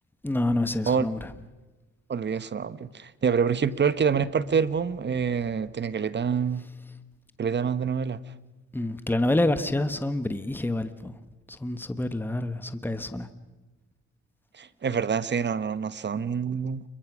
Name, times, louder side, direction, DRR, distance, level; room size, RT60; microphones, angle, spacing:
voice 1, 0.2-1.3 8.7-11.1 11.5-13.3, left 1 dB, 5° left, 11 dB, 1.4 m, -27 dB
voice 2, 2.1-6.6 7.4-8.2 14.5-16.8, right 6 dB, 35° right, 16 dB, 1.1 m, -26 dB
28.5 x 23.0 x 6.2 m, 1.2 s
cardioid pair, 90°, 30 cm